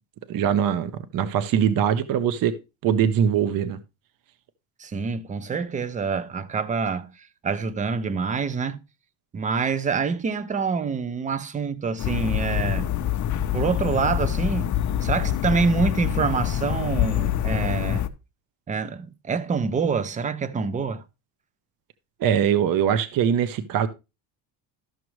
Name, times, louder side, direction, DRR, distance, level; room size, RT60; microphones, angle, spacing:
voice 1, 0.3-2.6 2.8-3.8 22.2-23.9, right 8 dB, 45° right, 0.7 m, -22 dB
voice 2, 4.8-8.8 9.3-12.9 13.5-18.0 18.7-21.0, right 5 dB, 20° right, 0.4 m, -26 dB
sound 1, 12.0-18.1, left 11 dB, 40° left, 0.6 m, -25 dB
12.5 x 6.1 x 3.1 m
cardioid pair, 145°, 47 cm